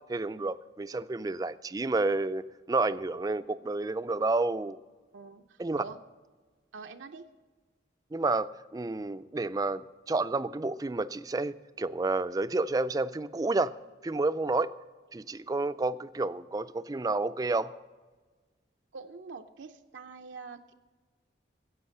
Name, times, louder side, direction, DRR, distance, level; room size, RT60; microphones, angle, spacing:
voice 1, 0.0-2.4 2.7-4.8 5.6-5.8 8.1-13.8 14.0-14.8 15.1-17.7, right 3 dB, 20° right, 14 dB, 0.3 m, -30 dB
voice 2, 5.1-6.0 6.7-7.3 18.9-20.7, right 4 dB, 85° right, 5 dB, 0.6 m, -45 dB
15.5 x 8.0 x 6.5 m, 1.4 s
head